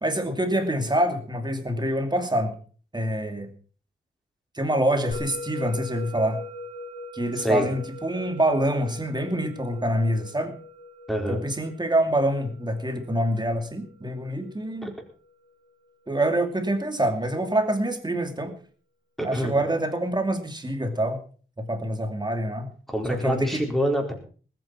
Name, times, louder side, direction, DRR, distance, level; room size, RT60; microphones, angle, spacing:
voice 1, 0.0-2.5 2.9-3.5 4.5-6.4 7.1-10.5 11.3-14.9 16.1-18.5 19.2-21.2 21.6-22.7 23.1-23.6, right 1 dB, 20° right, 6 dB, 2.6 m, -26 dB
Musical instrument, 5.1-15.7, left 1 dB, 45° left, 4.5 m, -42 dB
voice 2, 7.3-7.7 11.1-11.4 14.8-14.9 19.2-19.6 22.9-24.1, equal, ahead, 2 dB, 4.5 m, -26 dB
20.0 x 9.3 x 6.0 m, 0.42 s
wide cardioid pair, 145°, 21 cm